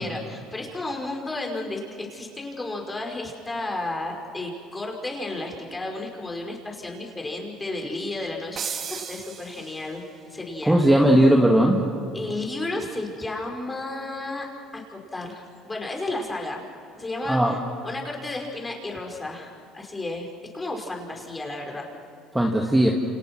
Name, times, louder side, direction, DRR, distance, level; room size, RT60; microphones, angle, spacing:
voice 1, 0.0-10.0 10.3-10.8 12.1-14.5 14.7-16.6 16.9-17.4 17.8-20.3 20.5-21.9, left 2 dB, 15° left, 1 dB, 5.5 m, -32 dB
sound 1, 8.6-10.2, right 6 dB, 45° right, 2.3 m, -35 dB
voice 2, 10.7-11.8 17.3-17.6 22.3-22.9, right 1 dB, 5° right, 0 dB, 2.2 m, -18 dB
29.5 x 28.5 x 6.3 m, 2.3 s
supercardioid pair, 90°, 0 cm